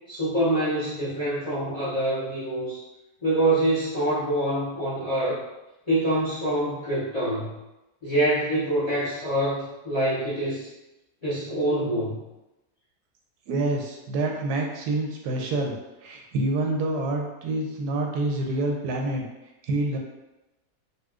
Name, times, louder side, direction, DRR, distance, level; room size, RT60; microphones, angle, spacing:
voice 1, 0.1-2.8 3.2-5.4 5.9-7.5 8.0-10.7 11.2-12.2, right 1 dB, 40° left, -10 dB, 0.5 m, -25 dB
voice 2, 13.5-15.8 16.0-19.2 19.6-20.0, right 2 dB, 90° right, 1 dB, 1.2 m, -27 dB
4.1 x 2.3 x 2.4 m, 0.98 s
omnidirectional pair, 1.7 m